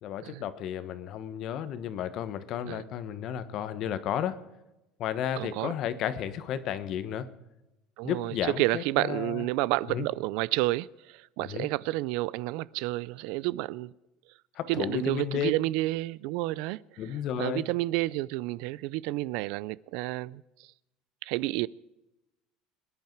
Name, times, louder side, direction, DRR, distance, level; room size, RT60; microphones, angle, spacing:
voice 1, 0.0-4.4 5.0-7.3 8.0-9.4 9.9-10.1 11.4-11.7 14.6-15.5 17.0-17.6, left 9 dB, 50° left, 1.2 m, -33 dB
voice 2, 5.4-5.7 8.0-13.9 14.7-16.8 17.1-20.4 21.2-21.7, right 19 dB, 70° right, 0.4 m, -30 dB
22.5 x 10.5 x 4.6 m
cardioid pair, 145°, 0 cm